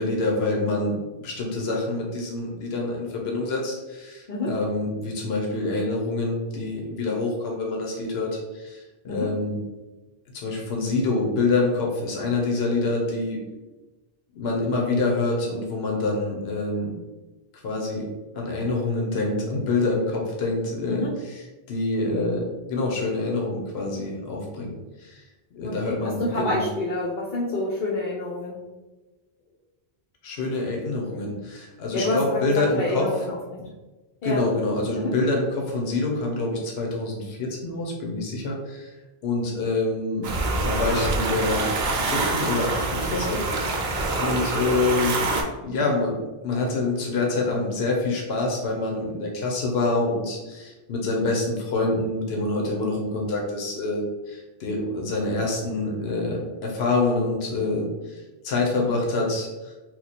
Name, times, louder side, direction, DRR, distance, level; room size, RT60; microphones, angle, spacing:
voice 1, 0.0-9.6 10.3-13.4 14.3-16.9 17.5-18.1 18.3-24.7 25.0-25.2 25.5-26.6 30.2-33.1 34.2-38.9 39.2-40.3 40.6-43.4 44.2-45.2 45.6-59.7, left 2 dB, 80° left, -1 dB, 1.0 m, -26 dB
voice 2, 25.6-28.6 31.9-32.2 32.5-33.7 34.2-34.4 34.9-35.1, left 1 dB, 60° left, -5 dB, 0.7 m, -28 dB
sound 1, 40.2-45.4, right 3 dB, 90° right, 0.9 m, -25 dB
2.9 x 2.3 x 4.0 m, 1.1 s
omnidirectional pair, 1.0 m